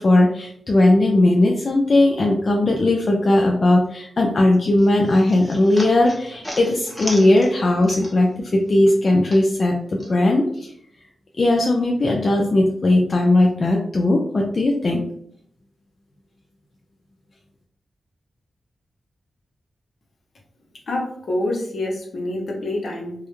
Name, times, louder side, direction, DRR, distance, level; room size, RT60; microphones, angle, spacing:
voice 1, 0.0-10.7 11.4-15.0, left 1 dB, 45° left, -1 dB, 0.3 m, -18 dB
sound 1, 4.8-8.4 8.7-10.1, equal, 5° left, 0.8 m, -36 dB
voice 2, 20.9-23.1, left 1 dB, 65° left, -1 dB, 0.7 m, -26 dB
2.3 x 2.0 x 2.9 m, 0.68 s
wide cardioid pair, 95°, 0 cm